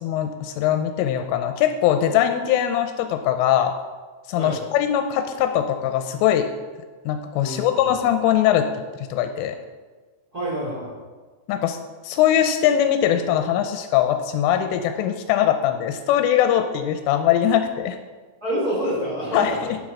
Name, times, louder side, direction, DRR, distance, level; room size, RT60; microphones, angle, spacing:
voice 1, 0.0-3.8 4.3-6.5 7.1-8.7 9.0-9.6 11.5-11.8 12.0-18.0 19.3-19.8, left 10 dB, 85° left, 7 dB, 3.1 m, -21 dB
voice 2, 7.4-7.8 10.3-10.9 18.4-19.7, equal, 20° right, -7 dB, 3.4 m, -27 dB
9.9 x 7.8 x 6.2 m, 1.3 s
omnidirectional pair, 5.8 m